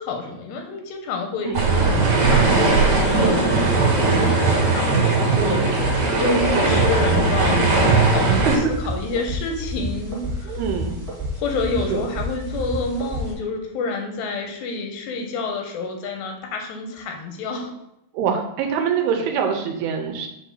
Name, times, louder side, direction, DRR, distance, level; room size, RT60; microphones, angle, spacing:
voice 1, 0.0-1.9 2.3-8.5 8.9-10.6 11.4-17.7, left 3 dB, 80° left, 3 dB, 3.0 m, -28 dB
sound 1, 1.5-8.6, right 3 dB, 55° right, 2.3 m, -18 dB
sound 2, 5.7-13.3, right 1 dB, 30° right, 0.6 m, -30 dB
voice 2, 10.5-11.0 11.9-12.1 18.1-20.3, right 7 dB, 80° right, 3 dB, 2.5 m, -25 dB
7.2 x 2.7 x 5.5 m, 0.81 s
omnidirectional pair, 4.7 m